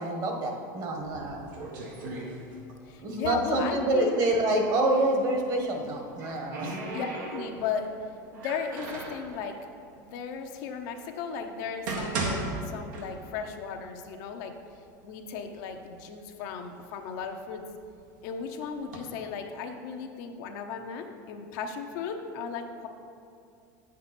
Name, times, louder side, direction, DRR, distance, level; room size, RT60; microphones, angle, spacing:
voice 1, 0.0-1.5 3.0-6.8, right 1 dB, 40° right, 2 dB, 1.5 m, -27 dB
sound 1, 1.0-2.9 3.2-4.6 5.7-7.8 8.3-9.3 10.0-10.1 10.8-10.9 11.5-13.5 13.8-13.9 14.6-14.7 15.1-15.8 16.3-18.0 18.6-19.0, right 2 dB, 80° right, 1.7 m, -37 dB
voice 2, 2.8-4.2 6.9-7.9 8.3-9.6 10.0-12.4 12.6-14.5 15.0-17.6 18.2-22.9, left 6 dB, 65° left, 4 dB, 0.9 m, -36 dB
9.4 x 7.6 x 4.3 m, 2.4 s
supercardioid pair, 130°, 10 cm